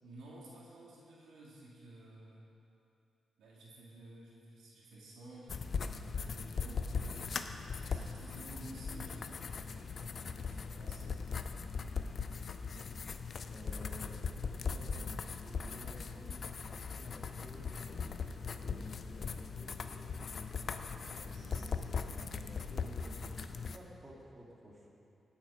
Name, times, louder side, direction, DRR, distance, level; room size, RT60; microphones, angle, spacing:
voice 1, 0.0-2.5 3.4-7.3 7.8-11.4 21.0-21.8, right 1 dB, 85° right, -5 dB, 2.6 m, -53 dB
sound 1, 5.5-23.8, left 5 dB, 55° left, 0.6 m, -39 dB
voice 2, 13.4-20.5 20.8-24.9, equal, 30° right, -4 dB, 2.6 m, -54 dB
18.0 x 7.4 x 5.1 m, 2.7 s
cardioid pair, 80°, 0 cm